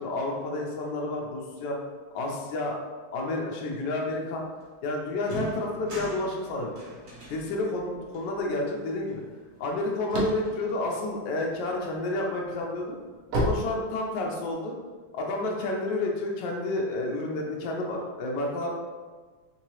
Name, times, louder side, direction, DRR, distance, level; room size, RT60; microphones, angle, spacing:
voice 1, 0.0-1.8 2.1-2.8 3.1-4.4 4.8-6.7 7.3-9.2 9.6-13.0 13.3-14.7 15.1-18.7, left 2 dB, 70° left, 0 dB, 1.1 m, -30 dB
sound 1, 4.6-4.7 5.2-9.7 10.1-11.1, right 1 dB, 45° right, 0.9 m, -43 dB
sound 2, 9.6-11.8 12.3-14.5, right 1 dB, 75° right, 0.7 m, -30 dB
3.7 x 2.8 x 3.0 m, 1.4 s
omnidirectional pair, 2.3 m